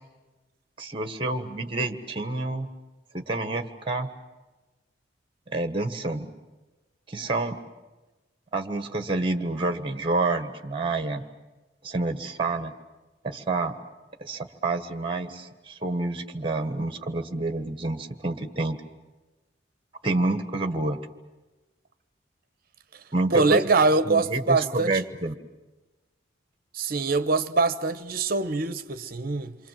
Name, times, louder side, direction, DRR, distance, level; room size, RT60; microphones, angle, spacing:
voice 1, 0.8-2.7 3.1-4.1 5.5-6.3 7.1-7.6 8.5-11.2 11.8-12.7 13.2-13.7 14.2-18.8 20.0-21.0 23.1-23.6 24.0-25.3, right 2 dB, 30° right, 1.5 m, -28 dB
voice 2, 23.3-25.0 26.7-29.6, right 3 dB, 55° right, 1.0 m, -23 dB
28.0 x 24.5 x 7.6 m
head